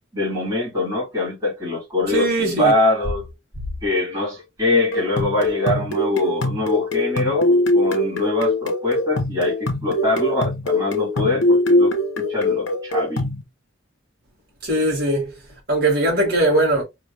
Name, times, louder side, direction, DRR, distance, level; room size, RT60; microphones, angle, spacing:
voice 1, 0.1-3.3 3.8-13.3, left 2 dB, 15° right, 2.9 m, -23 dB
voice 2, 2.1-2.7 14.6-15.3 15.7-16.8, right 1 dB, 50° right, 2.8 m, -20 dB
sound 1, 4.9-13.4, left 1 dB, 70° left, 0.7 m, -22 dB
4.7 x 3.4 x 2.7 m
head